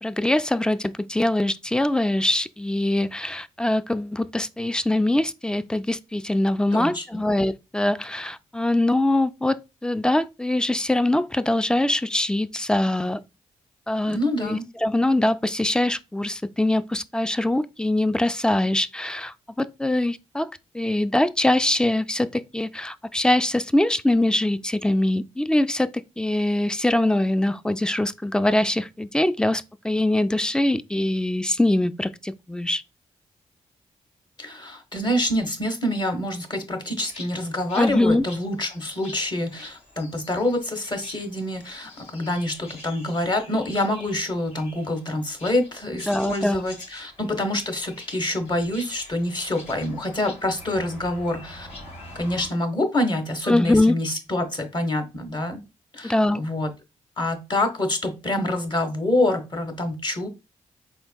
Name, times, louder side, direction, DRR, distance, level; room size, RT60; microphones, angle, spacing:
voice 1, 0.0-13.2 13.9-32.8 37.8-38.2 46.1-46.6 53.5-53.9 56.0-56.4, left 1 dB, 5° left, 0.3 m, -23 dB
voice 2, 6.7-7.2 14.1-14.6 34.4-51.7 52.1-55.6 55.9-56.7 57.2-60.3, left 1 dB, 35° left, 1.3 m, -26 dB
sound 1, 37.1-52.5, left 2 dB, 65° left, 2.4 m, -45 dB
4.4 x 3.7 x 2.3 m
cardioid pair, 65°, 13 cm